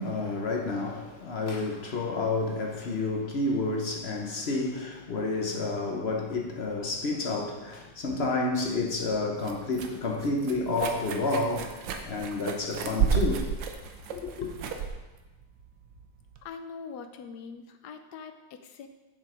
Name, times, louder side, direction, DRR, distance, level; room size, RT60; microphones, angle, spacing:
voice 1, 0.0-13.4 14.1-14.5, left 3 dB, 45° left, 0.9 m, -30 dB
sound 1, 8.6-16.4, right 7 dB, 80° right, 1.5 m, -33 dB
voice 2, 16.4-18.9, left 5 dB, 65° left, 1.2 m, -43 dB
7.5 x 7.1 x 5.0 m
omnidirectional pair, 2.0 m